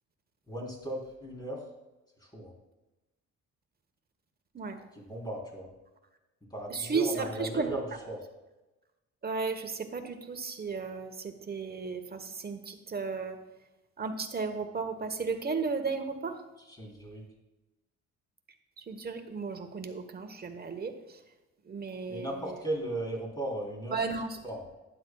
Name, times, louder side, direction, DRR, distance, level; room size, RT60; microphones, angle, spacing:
voice 1, 0.5-1.6 2.2-2.5 4.9-5.7 6.5-8.2 16.8-17.2 22.1-24.0 24.4-24.6, right 1 dB, 15° left, -3 dB, 3.5 m, -36 dB
voice 2, 6.7-7.7 9.2-13.4 14.0-16.4 18.8-21.2 21.6-22.6 23.9-24.4, right 4 dB, 30° right, 6 dB, 1.2 m, -34 dB
12.0 x 9.8 x 2.3 m, 1.1 s
cardioid pair, 90°, 30 cm